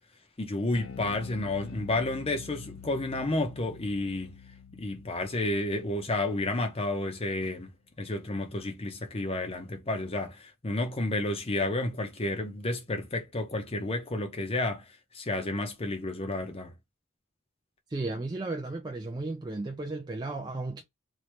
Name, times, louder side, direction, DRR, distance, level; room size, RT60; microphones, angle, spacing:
voice 1, 0.4-4.3 4.7-14.8 15.1-16.7, left 2 dB, 25° left, 0.7 m, -31 dB
Bass guitar, 0.7-7.2, left 6 dB, 75° left, 0.4 m, -47 dB
voice 2, 17.9-20.8, right 2 dB, 20° right, 0.4 m, -34 dB
3.1 x 2.7 x 3.1 m
head